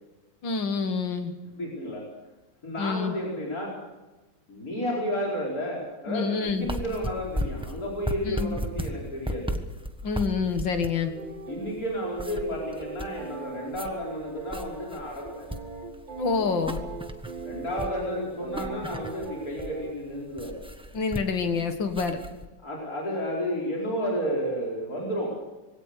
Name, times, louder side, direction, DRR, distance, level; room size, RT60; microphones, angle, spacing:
voice 1, 0.4-1.3 2.8-3.1 6.1-6.7 8.3-8.5 10.0-11.1 16.2-16.8 20.9-22.2, left 5 dB, 80° left, 7 dB, 2.5 m, -27 dB
voice 2, 1.6-2.1 2.6-3.8 4.5-9.5 11.5-15.5 17.4-20.6 22.6-25.3, equal, 50° left, -3 dB, 5.4 m, -32 dB
sound 1, 6.5-22.4, equal, 5° right, 1.1 m, -36 dB
sound 2, 11.0-19.9, right 5 dB, 75° right, 3.6 m, -40 dB
22.0 x 17.5 x 6.8 m, 1.1 s
omnidirectional pair, 2.0 m